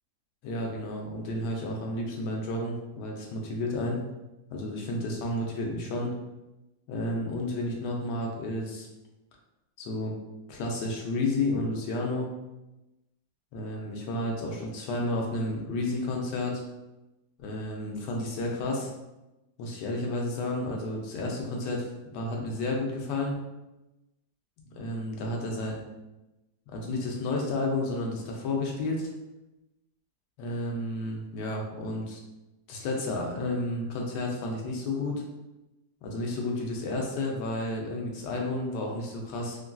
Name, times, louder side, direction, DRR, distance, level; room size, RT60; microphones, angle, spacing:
voice 1, 0.4-4.0 4.5-6.1 6.9-8.9 9.8-10.2 10.5-12.3 13.5-16.6 17.4-18.9 19.6-21.9 22.1-23.4 24.6-25.9 26.7-29.1 30.4-32.2 32.7-35.2 36.0-39.6, left 2 dB, 85° left, 0 dB, 1.2 m, -31 dB
3.0 x 2.5 x 2.2 m, 0.99 s
omnidirectional pair, 1.8 m